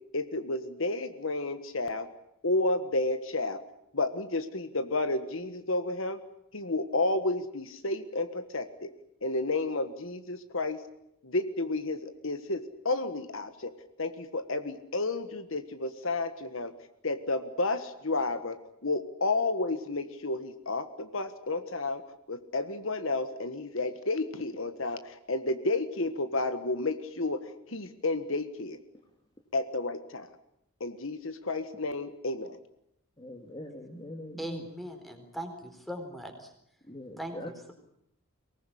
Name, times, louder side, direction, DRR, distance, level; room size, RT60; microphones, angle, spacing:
voice 1, 0.1-2.1 2.4-3.6 3.9-6.2 6.5-8.9 9.2-10.8 11.2-13.7 14.0-16.7 17.0-22.0 22.3-28.8 29.5-30.3 30.8-32.6, left 2 dB, 65° left, 10 dB, 1.5 m, -31 dB
voice 2, 33.2-34.6 36.9-37.7, left 1 dB, 25° left, 2 dB, 2.0 m, -42 dB
voice 3, 34.4-36.5 37.2-37.7, equal, ahead, 6 dB, 4.0 m, -40 dB
24.0 x 19.0 x 10.0 m, 0.76 s
head